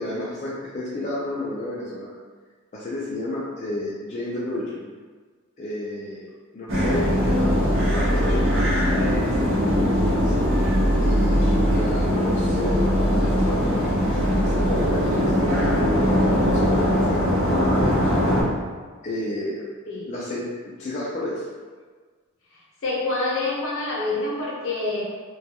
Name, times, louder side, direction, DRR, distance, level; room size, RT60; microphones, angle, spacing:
voice 1, 0.0-2.1 2.7-4.9 5.6-6.3 6.5-10.3 11.0-18.2 19.0-19.6 20.1-20.5 20.8-21.5, left 1 dB, 35° left, -7 dB, 0.3 m, -31 dB
sound 1, 6.7-18.4, equal, 70° right, 0.7 m, -21 dB
voice 2, 22.8-25.0, left 2 dB, 70° left, -5 dB, 0.7 m, -26 dB
2.3 x 2.2 x 2.7 m, 1.5 s
head